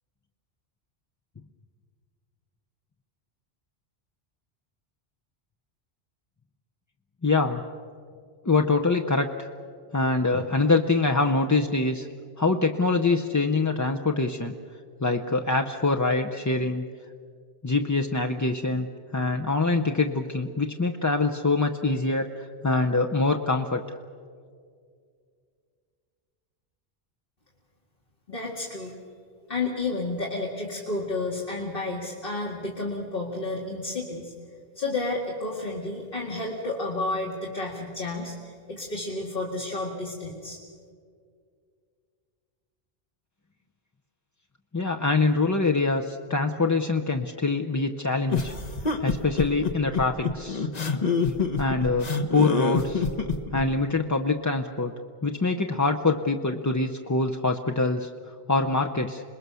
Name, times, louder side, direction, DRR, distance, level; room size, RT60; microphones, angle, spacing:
voice 1, 7.2-7.6 8.5-9.3 9.9-12.1 12.4-14.5 15.0-16.9 17.6-22.3 22.6-23.8 44.7-48.5 49.0-50.7 51.6-53.1 53.5-54.9 55.2-58.1 58.5-59.2, left 3 dB, 20° left, 4 dB, 0.6 m, -24 dB
voice 2, 28.3-28.9 29.5-34.3 34.7-40.6, left 2 dB, 60° left, -3 dB, 2.4 m, -31 dB
sound 1, 48.3-53.6, left 4 dB, 40° left, 1.2 m, -26 dB
27.0 x 20.5 x 6.9 m, 2.2 s
omnidirectional pair, 1.0 m